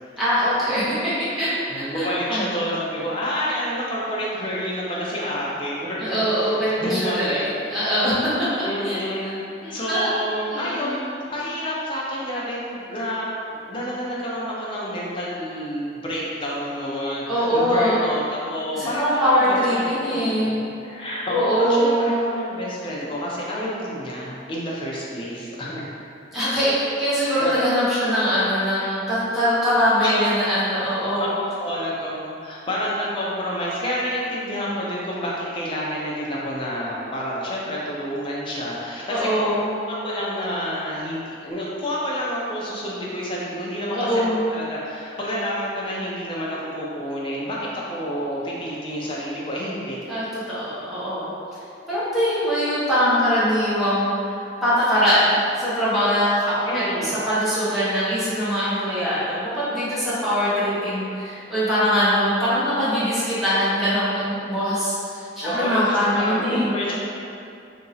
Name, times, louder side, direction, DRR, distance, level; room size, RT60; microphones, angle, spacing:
voice 1, 0.2-2.4 6.0-8.3 8.8-9.0 9.2-9.3 9.6-10.1 10.5-11.0 17.3-18.0 18.7-20.6 21.3-22.1 26.3-31.4 39.1-39.7 43.9-44.4 50.1-51.3 51.9-54.1 54.6-66.7, equal, ahead, -13 dB, 1.0 m, -22 dB
voice 2, 1.7-7.4 8.6-9.3 9.7-13.3 13.7-19.9 20.3-20.5 20.8-25.9 27.4-27.5 30.0-30.3 31.2-31.3 31.6-44.2 44.5-50.0 56.6-57.1 65.4-67.0, equal, 25° left, -6 dB, 0.6 m, -29 dB
2.8 x 2.6 x 4.0 m, 2.6 s
head